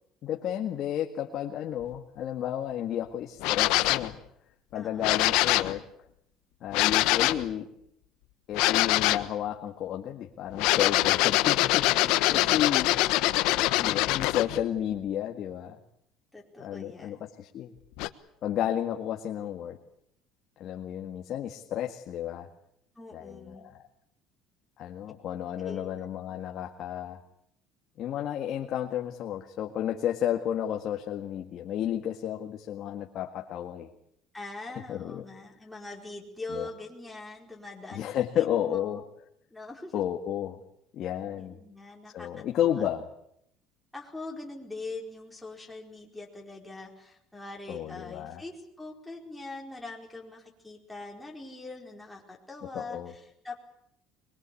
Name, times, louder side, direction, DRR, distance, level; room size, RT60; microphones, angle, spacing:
voice 1, 0.2-4.1 4.7-5.8 6.6-7.7 8.5-12.9 13.8-15.8 16.6-17.7 18.4-19.8 20.6-22.5 23.1-23.7 24.8-27.2 28.0-33.9 34.9-35.2 36.5-36.7 37.9-39.0 39.9-40.6 40.9-41.6 42.1-43.0 47.7-48.4 52.7-53.1, left 10 dB, 45° left, 3 dB, 1.8 m, -32 dB
sound 1, 3.4-4.1 5.0-5.8 6.7-7.5 8.5-9.3 10.5-14.6 18.0-18.1, left 18 dB, 75° left, 1.2 m, -24 dB
voice 2, 4.7-5.3 12.2-12.9 16.3-17.2 22.9-23.7 25.6-25.9 34.3-39.0 39.5-39.9 41.4-42.8 43.9-53.5, left 2 dB, 5° left, -1 dB, 4.7 m, -43 dB
23.5 x 22.5 x 8.5 m, 0.73 s
cardioid pair, 150°, 0 cm